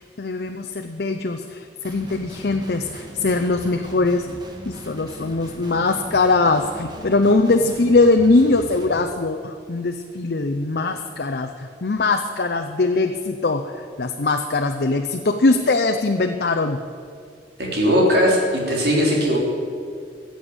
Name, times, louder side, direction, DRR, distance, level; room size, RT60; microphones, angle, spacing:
voice 1, 0.0-4.3 4.7-16.8, left 3 dB, 60° left, 5 dB, 0.6 m, -21 dB
Guitar, 1.8-9.0, right 1 dB, 25° right, 1.7 m, -39 dB
voice 2, 17.6-19.4, equal, 60° right, -2 dB, 3.6 m, -18 dB
15.5 x 7.8 x 8.0 m, 2.3 s
head